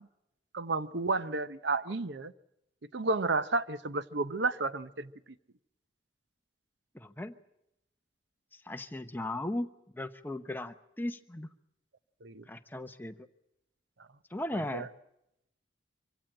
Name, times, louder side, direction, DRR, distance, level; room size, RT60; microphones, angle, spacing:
voice 1, 0.5-2.3 2.9-5.1 12.2-12.4 14.5-14.9, right 3 dB, 65° right, 0.7 m, -32 dB
voice 2, 6.9-7.3 8.5-9.7 9.9-11.5 12.5-13.1 14.3-14.9, left 1 dB, 10° left, 0.8 m, -37 dB
24.5 x 16.5 x 8.9 m
head